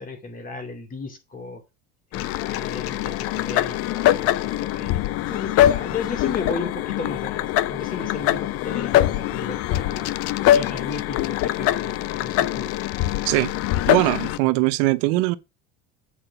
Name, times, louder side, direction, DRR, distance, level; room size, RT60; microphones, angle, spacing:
voice 1, 0.0-1.6 2.1-4.3 4.6-10.1 10.5-12.7, left 4 dB, 25° left, 2.5 m, -34 dB
sound 1, 2.1-14.4, left 13 dB, 50° left, 0.6 m, -23 dB
voice 2, 13.9-15.4, right 20 dB, 75° right, 0.8 m, -21 dB
8.7 x 4.9 x 5.7 m
cardioid pair, 130°, 30 cm